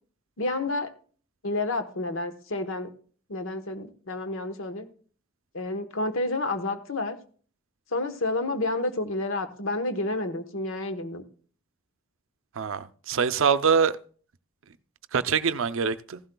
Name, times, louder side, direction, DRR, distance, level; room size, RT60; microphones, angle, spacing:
voice 1, 0.4-0.9 1.4-2.9 3.3-4.9 5.5-7.2 7.9-11.2, left 2 dB, 70° left, 1.1 m, -30 dB
voice 2, 12.5-14.0 15.1-16.2, right 6 dB, 70° right, 0.5 m, -24 dB
15.5 x 11.5 x 2.3 m
head